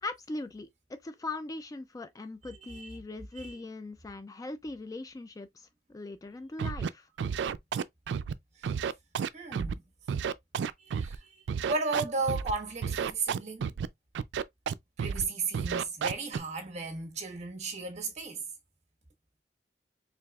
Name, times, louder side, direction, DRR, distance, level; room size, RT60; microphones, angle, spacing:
voice 1, 0.0-7.1, left 2 dB, 20° left, 0.3 m, -40 dB
Scratching (performance technique), 6.6-6.9 7.2-8.3 8.6-9.7 10.1-11.2 11.5-12.5 12.8-13.9 14.1-14.7 15.0-15.2 15.5-16.4, right 7 dB, 85° right, 0.3 m, -31 dB
voice 2, 9.3-9.8 10.8-11.4 11.7-13.7 15.0-18.4, right 3 dB, 40° right, 1.3 m, -35 dB
4.7 x 3.4 x 2.3 m
head